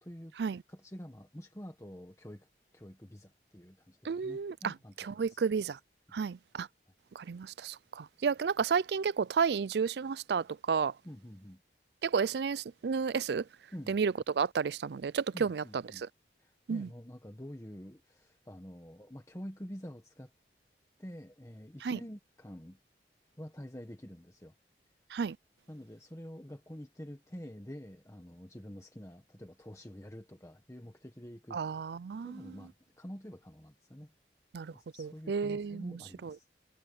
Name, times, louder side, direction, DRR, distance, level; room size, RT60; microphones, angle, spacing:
voice 1, 0.0-0.3 0.7-2.5 2.7-5.5 11.0-11.6 13.7-14.0 15.3-16.0 16.4-20.3 21.0-22.8 23.4-24.5 25.7-31.6 32.2-34.1 34.7-36.5, equal, 15° left, 1.3 m, -47 dB
voice 2, 4.0-4.7 5.0-5.8 6.1-6.7 7.2-10.9 12.0-13.4 13.9-15.6 16.7-16.9 21.8-22.0 25.1-25.4 31.5-32.3 34.5-34.7 35.0-36.3, right 6 dB, 65° right, 0.4 m, -32 dB
head